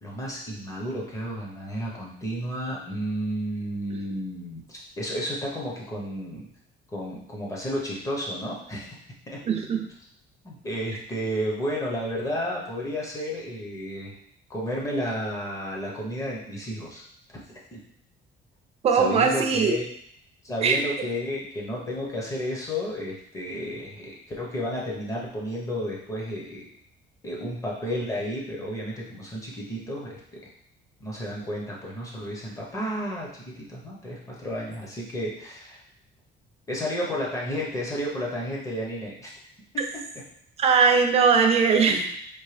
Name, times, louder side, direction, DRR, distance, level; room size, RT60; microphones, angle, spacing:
voice 1, 0.0-6.5 6.9-9.0 9.3-9.4 10.4-14.2 14.5-17.0 17.3-17.4 17.7-17.8 18.9-19.9 20.4-26.7 27.2-30.2 31.0-35.8 36.7-39.3 39.7-40.0 41.8-42.0, equal, 15° left, -3 dB, 0.8 m, -32 dB
voice 2, 9.5-9.9 18.8-19.7 20.6-20.8 40.6-42.1, right 5 dB, 30° right, 3 dB, 0.5 m, -20 dB
4.5 x 2.8 x 3.2 m, 0.68 s
cardioid pair, 180°, 20 cm